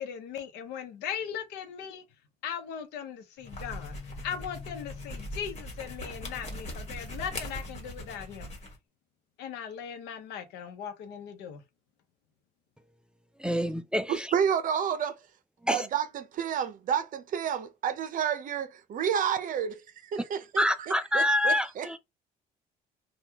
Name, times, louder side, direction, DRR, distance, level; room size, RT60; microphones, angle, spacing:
voice 1, 0.0-2.0 2.4-4.0 4.2-8.5 9.4-11.6, left 8 dB, 90° left, 0.8 m, -38 dB
sound 1, 3.4-8.8, left 1 dB, 40° left, 1.4 m, -40 dB
voice 2, 13.4-14.3 15.7-15.9 20.6-22.0, left 1 dB, 5° right, 0.3 m, -26 dB
voice 3, 14.1-15.2 15.7-21.9, right 8 dB, 50° right, 0.6 m, -30 dB
3.5 x 2.3 x 2.8 m
cardioid pair, 110°, 17 cm